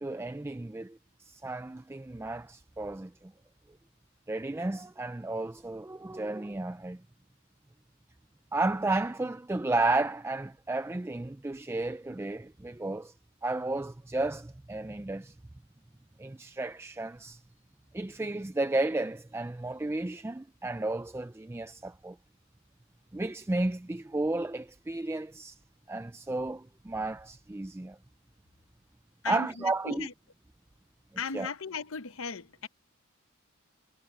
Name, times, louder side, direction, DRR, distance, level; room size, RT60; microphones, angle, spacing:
voice 1, 0.0-3.3 4.3-7.0 8.5-13.1 13.4-15.4 16.2-17.4 17.9-22.2 23.1-25.6 25.9-28.0 29.3-30.1 31.3-31.5, right 2 dB, 10° right, 0.4 m, -33 dB
voice 2, 31.2-32.7, left 5 dB, 70° left, 0.8 m, -36 dB
head